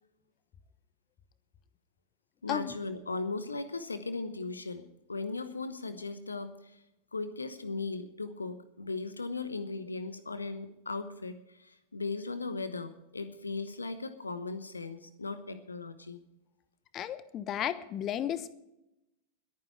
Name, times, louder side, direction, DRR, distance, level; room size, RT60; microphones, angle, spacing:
voice 1, 2.4-6.8 7.1-16.2, left 3 dB, 80° left, 12 dB, 1.1 m, -37 dB
voice 2, 16.9-18.6, left 10 dB, 30° left, 16 dB, 1.0 m, -34 dB
21.5 x 9.4 x 4.7 m, 0.89 s
figure-of-eight pair, 90°, 0 cm